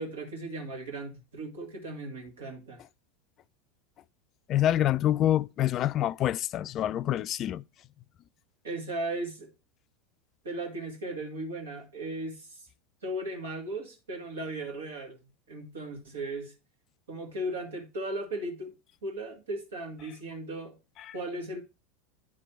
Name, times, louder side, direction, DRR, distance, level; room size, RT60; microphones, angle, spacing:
voice 1, 0.0-2.8 8.6-9.5 10.4-12.7 13.0-15.2 15.5-16.5 17.1-18.7 19.0-20.8 21.1-21.6, right 1 dB, 80° right, 1.9 m, -36 dB
voice 2, 4.5-7.6, left 12 dB, 40° left, 0.3 m, -26 dB
9.8 x 3.3 x 4.4 m
hypercardioid pair, 90°, 0 cm